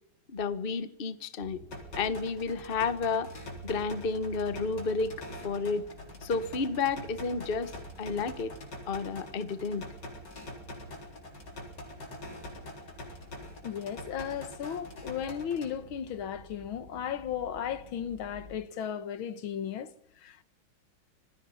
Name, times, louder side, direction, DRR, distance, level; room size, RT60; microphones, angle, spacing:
voice 1, 0.3-1.6 2.0-3.3 3.6-5.2 5.4-5.8 6.2-7.7 8.0-8.5 8.9-9.8, left 4 dB, 35° left, 1.2 m, -31 dB
sound 1, 1.4-18.6, equal, 25° right, 7.6 m, -52 dB
sound 2, 1.7-15.7, left 1 dB, 60° left, 4.6 m, -45 dB
voice 2, 13.6-19.9 20.2-20.4, left 8 dB, 85° left, 2.0 m, -35 dB
26.0 x 20.5 x 5.7 m
omnidirectional pair, 2.1 m